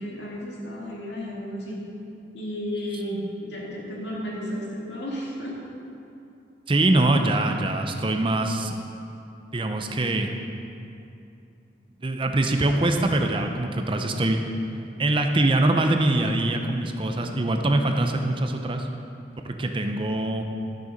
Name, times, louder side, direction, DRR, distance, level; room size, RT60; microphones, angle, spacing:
voice 1, 0.0-1.8 2.3-5.5, equal, 75° left, -4 dB, 2.3 m, -33 dB
voice 2, 6.7-8.8 9.5-10.3 12.0-14.4 15.0-18.9 19.4-20.4, right 2 dB, 30° right, 4 dB, 0.6 m, -23 dB
12.0 x 6.6 x 5.2 m, 2.7 s
head